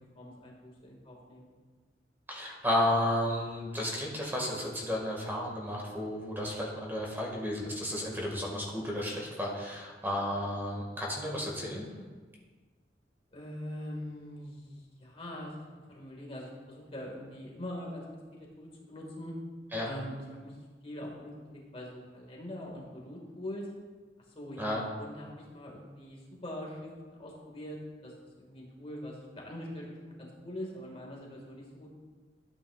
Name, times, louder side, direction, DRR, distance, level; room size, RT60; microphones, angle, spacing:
voice 1, 0.2-1.5 13.3-18.1 18.3-19.3 19.8-20.6 20.8-23.7 24.4-26.9 27.2-31.9, left 1 dB, 35° left, -2 dB, 1.8 m, -43 dB
voice 2, 2.3-11.8 19.7-19.9 24.6-24.8, left 1 dB, 10° right, -2 dB, 1.8 m, -32 dB
12.5 x 8.8 x 2.4 m, 1.4 s
head